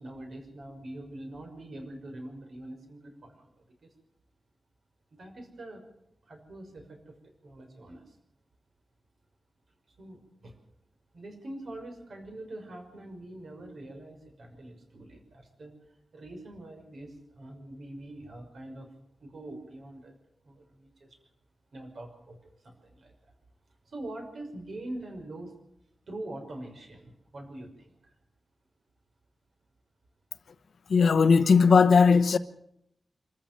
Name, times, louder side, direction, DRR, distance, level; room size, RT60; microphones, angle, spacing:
voice 1, 0.0-3.5 3.8-3.9 5.1-5.8 6.2-8.2 10.0-10.6 11.1-15.7 16.1-18.9 19.2-20.1 20.4-21.2 21.7-23.1 23.9-25.6 26.1-28.1, right 1 dB, 60° right, 5.8 m, -44 dB
voice 2, 30.9-32.4, left 5 dB, 70° left, 1.0 m, -18 dB
26.5 x 14.0 x 7.6 m
wide cardioid pair, 175°, 0 cm